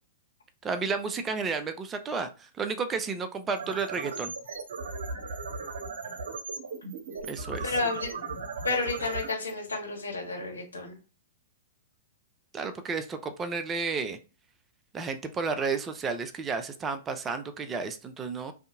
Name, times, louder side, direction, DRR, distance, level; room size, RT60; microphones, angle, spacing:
voice 1, 0.6-4.3 7.3-7.7 12.5-14.2 14.9-18.5, right 4 dB, 20° right, 8 dB, 0.4 m, -32 dB
sound 1, 3.4-10.5, right 3 dB, 65° right, 0.8 m, -37 dB
voice 2, 7.6-8.1 8.6-11.0, left 3 dB, 80° left, 0 dB, 1.2 m, -31 dB
2.7 x 2.3 x 2.6 m, 0.33 s
figure-of-eight pair, 105°, 0 cm